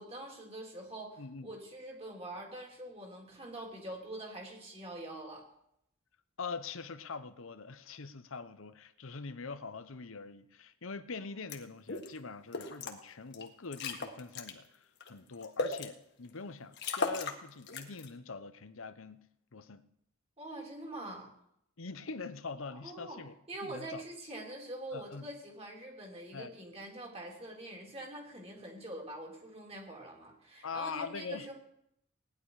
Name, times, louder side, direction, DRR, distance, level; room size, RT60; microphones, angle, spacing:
voice 1, 0.0-5.4 20.4-21.3 22.7-23.2 23.5-31.5, right 1 dB, 30° right, 3.4 m, -44 dB
voice 2, 1.2-1.5 6.4-19.2 19.5-19.9 21.8-23.3 23.6-24.0 24.9-25.3 26.3-26.5 30.6-31.5, left 4 dB, 70° left, 0.9 m, -43 dB
sound 1, 11.5-11.6 11.9-12.1 12.5-12.9 13.3-13.4 13.7-14.5 15.0-15.9 16.4-16.5 16.7-17.4 17.7-18.1, left 3 dB, 55° left, 1.6 m, -36 dB
18.5 x 10.5 x 4.9 m
head